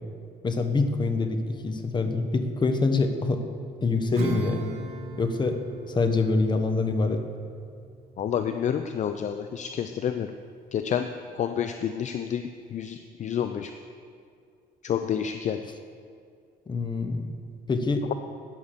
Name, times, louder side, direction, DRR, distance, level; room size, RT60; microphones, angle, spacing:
voice 1, 0.4-3.4 3.8-4.7 5.2-5.6 5.9-7.2 16.7-17.3 17.7-18.1, left 3 dB, 25° left, 7 dB, 1.2 m, -25 dB
Acoustic guitar / Strum, 4.1-10.1, right 2 dB, 75° right, 2.0 m, -40 dB
voice 2, 8.2-10.3 10.7-11.1 11.3-13.7 14.8-15.6, left 8 dB, 45° left, 8 dB, 0.6 m, -29 dB
13.0 x 9.4 x 6.8 m, 2.3 s
cardioid pair, 110°, 17 cm